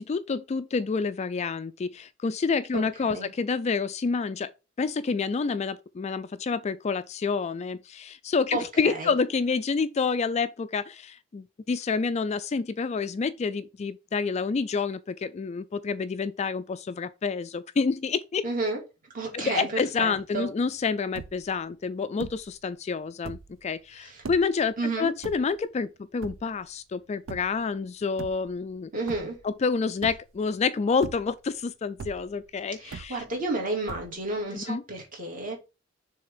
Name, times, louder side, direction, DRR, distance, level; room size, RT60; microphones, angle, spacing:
voice 1, 0.0-4.5 4.8-18.4 19.3-28.9 29.4-33.2 34.5-34.8, left 5 dB, 35° left, 0.3 m, -28 dB
voice 2, 2.7-3.3 8.5-9.1 18.4-18.8 19.1-20.5 24.0-24.2 24.8-25.1 28.9-29.4 32.8-35.6, right 2 dB, 40° right, 2.5 m, -31 dB
sound 1, 20.7-20.8 21.0-21.6 22.2-22.6 23.1-23.6 24.2-24.6 25.2-25.8 26.2-26.7 27.3-27.7 28.1-28.8 29.1-29.6 30.0-30.5 30.9-31.6 32.0-32.5 32.9-33.5 33.9-34.4, right 4 dB, 70° right, 0.5 m, -41 dB
6.5 x 3.5 x 4.9 m
head